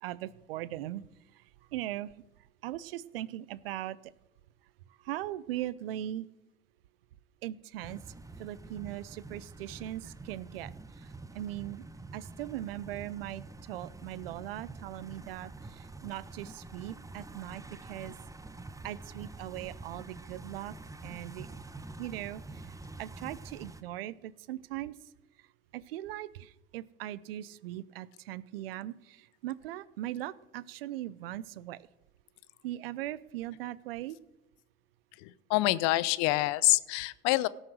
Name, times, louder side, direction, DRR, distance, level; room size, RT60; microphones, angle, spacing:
voice 1, 0.0-1.0 1.7-2.1 2.6-4.0 5.0-6.3 7.4-8.0 8.4-10.7 11.0-11.8 12.1-18.1 18.8-20.7 21.0-21.5 22.0-22.7 23.0-25.0 25.7-31.8 32.6-34.2, right 14 dB, 80° right, 20 dB, 0.6 m, -39 dB
sound 1, 7.8-23.8, right 3 dB, 10° right, 1.0 m, -47 dB
voice 2, 35.2-37.5, left 19 dB, 65° left, 19 dB, 0.7 m, -26 dB
17.5 x 6.5 x 6.2 m, 0.95 s
hypercardioid pair, 65°, 29 cm